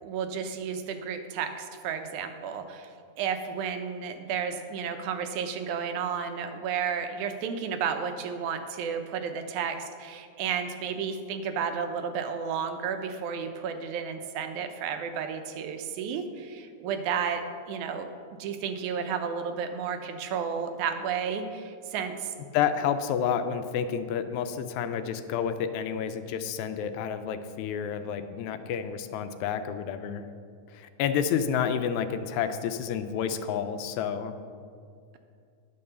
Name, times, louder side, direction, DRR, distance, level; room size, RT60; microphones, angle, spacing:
voice 1, 0.0-17.4 17.7-18.1 18.4-22.3, right 7 dB, 85° right, 7 dB, 2.2 m, -32 dB
voice 2, 22.5-30.3 30.7-34.3, left 8 dB, 80° left, 10 dB, 1.9 m, -30 dB
10.5 x 5.4 x 6.8 m, 2.3 s
omnidirectional pair, 3.4 m